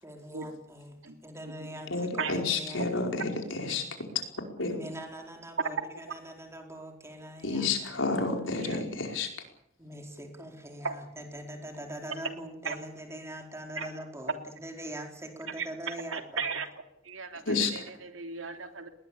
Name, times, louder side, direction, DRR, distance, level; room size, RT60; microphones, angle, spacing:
voice 1, 0.0-1.0 1.2-3.1 4.7-8.0 9.8-16.5, right 1 dB, 15° right, 3 dB, 4.5 m, -43 dB
voice 2, 1.9-3.9 4.6-4.8 7.4-9.3 17.4-17.9, left 3 dB, 70° left, 3 dB, 5.2 m, -30 dB
voice 3, 15.6-16.7 17.0-18.9, right 5 dB, 85° right, 6 dB, 3.2 m, -36 dB
21.0 x 20.0 x 8.7 m, 0.73 s
head